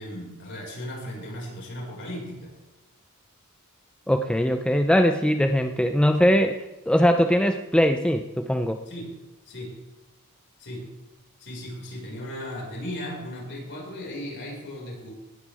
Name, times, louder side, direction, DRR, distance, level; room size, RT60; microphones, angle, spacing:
voice 1, 0.0-2.5 8.9-9.2 9.5-9.8 10.6-10.9 11.4-15.1, equal, 55° left, -2 dB, 5.2 m, -36 dB
voice 2, 4.1-6.6 6.9-8.8, equal, 5° left, 6 dB, 0.5 m, -21 dB
18.5 x 12.5 x 3.5 m, 1.1 s
head